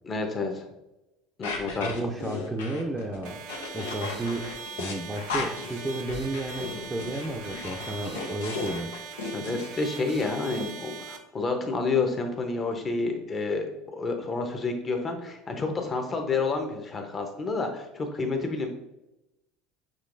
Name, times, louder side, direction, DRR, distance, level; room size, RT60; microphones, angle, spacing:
voice 1, 0.0-0.6 1.4-1.9 9.3-18.7, left 3 dB, 30° left, 4 dB, 0.9 m, -29 dB
sound 1, 1.4-9.7, left 4 dB, 90° left, 0.7 m, -36 dB
voice 2, 1.8-3.4 3.7-4.5 4.8-8.9, right 2 dB, 15° right, 0 dB, 0.5 m, -32 dB
sound 2, 3.2-11.2, right 5 dB, 70° right, 0.6 m, -41 dB
6.4 x 2.9 x 2.6 m, 0.94 s
hypercardioid pair, 85°, 0 cm